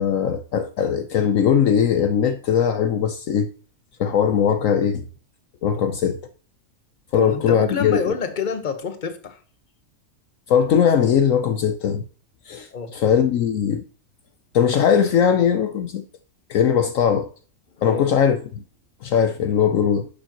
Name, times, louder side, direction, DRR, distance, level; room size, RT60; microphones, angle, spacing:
voice 1, 0.0-3.5 4.0-5.0 5.6-6.2 7.1-8.0 10.5-12.0 12.5-13.8 14.5-16.0 16.5-17.3 17.8-18.6 19.0-20.1, left 8 dB, 70° left, 1.0 m, -20 dB
voice 2, 7.1-9.4 12.7-12.9 17.8-18.1, left 6 dB, 35° left, 1.1 m, -28 dB
12.0 x 7.0 x 2.9 m
omnidirectional pair, 1.5 m